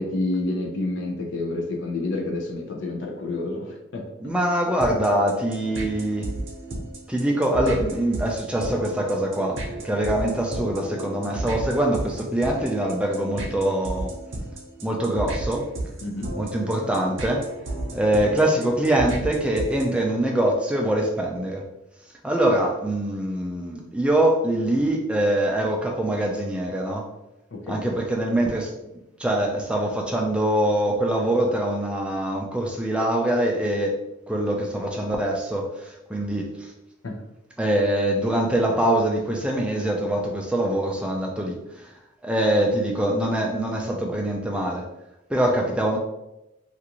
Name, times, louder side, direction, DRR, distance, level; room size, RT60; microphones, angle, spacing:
voice 1, 0.0-4.4 16.0-16.3 27.6-27.8 37.0-37.2, left 2 dB, 75° left, 0 dB, 0.5 m, -29 dB
voice 2, 4.2-6.3 7.1-9.6 9.8-14.1 14.8-15.7 16.3-17.5 17.9-21.6 22.2-27.1 27.7-28.7 29.2-34.0 34.3-36.7 37.6-41.9 42.2-44.8 45.3-46.0, right 1 dB, 5° right, 0 dB, 0.3 m, -24 dB
sound 1, 4.8-20.0, right 1 dB, 80° right, 0.7 m, -33 dB
2.5 x 2.5 x 2.8 m, 0.93 s
head